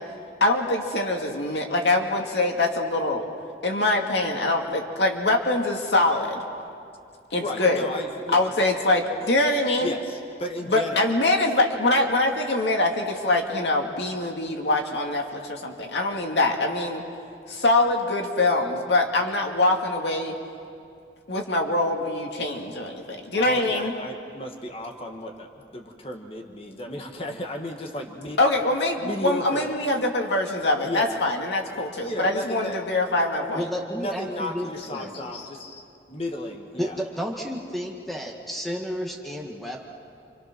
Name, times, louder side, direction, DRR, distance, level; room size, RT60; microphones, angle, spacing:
voice 1, 0.4-3.2 3.6-6.4 7.3-7.8 8.3-9.9 10.7-17.0 17.5-20.3 21.3-23.9 28.4-33.7, left 2 dB, 80° left, 2 dB, 2.3 m, -24 dB
voice 2, 7.4-8.7 9.8-11.1 23.3-28.4 29.0-29.7 30.8-31.2 32.0-32.8 34.0-35.6 36.1-37.0, left 1 dB, 30° left, 2 dB, 1.6 m, -34 dB
voice 3, 33.5-35.1 36.8-39.8, equal, ahead, 0 dB, 1.8 m, -32 dB
29.0 x 26.0 x 6.2 m, 2.4 s
head